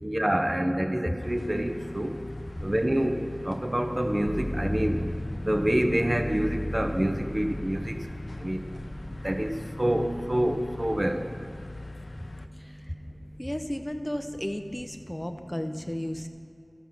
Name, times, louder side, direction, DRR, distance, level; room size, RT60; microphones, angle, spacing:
voice 1, 0.0-2.1 2.6-5.0 5.4-8.0 8.4-8.6 9.2-9.5 9.8-11.2, right 1 dB, 30° right, 5 dB, 0.8 m, -27 dB
sound 1, 1.2-12.5, left 2 dB, 70° left, 0.4 m, -41 dB
sound 2, 4.2-12.1 12.5-13.3, equal, 40° left, 1.2 m, -37 dB
voice 2, 12.5-12.9 13.4-16.3, equal, 15° left, 7 dB, 0.7 m, -34 dB
14.0 x 5.5 x 6.0 m, 2.6 s
wide cardioid pair, 45°, 0 cm